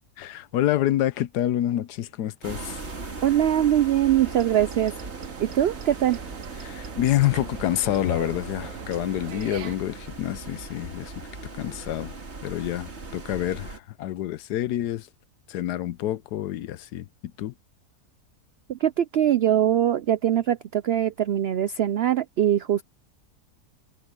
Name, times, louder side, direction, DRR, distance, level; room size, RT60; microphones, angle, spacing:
voice 1, 0.2-2.8 6.6-11.1 11.6-12.2 12.4-15.1 15.5-17.1 17.4-17.5, left 13 dB, 90° left, 1.3 m, -27 dB
sound 1, 2.4-13.8, right 3 dB, 45° right, 2.5 m, -39 dB
voice 2, 3.2-4.9 5.4-6.2 18.7-22.8, right 11 dB, 90° right, 0.5 m, -22 dB
sound 2, 4.2-9.8, right 10 dB, 60° right, 1.1 m, -41 dB
omnidirectional pair, 1.7 m